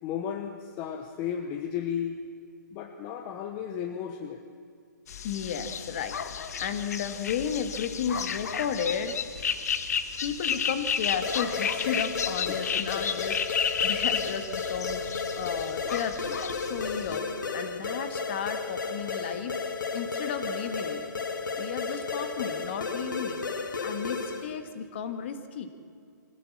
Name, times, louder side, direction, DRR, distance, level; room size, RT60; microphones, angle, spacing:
voice 1, 0.0-2.2 2.7-4.5 12.5-13.0, left 8 dB, 20° left, 5 dB, 0.9 m, -34 dB
sound 1, 5.1-17.2, left 7 dB, 55° left, 1.4 m, -32 dB
voice 2, 5.2-6.2 6.6-9.2 10.2-19.6 19.9-21.0 21.6-23.4 23.8-25.7, left 7 dB, 35° left, 9 dB, 1.7 m, -33 dB
sound 2, 11.2-24.6, left 4 dB, 85° left, 2.2 m, -33 dB
24.0 x 16.5 x 7.4 m, 2.4 s
hypercardioid pair, 165°, 10 cm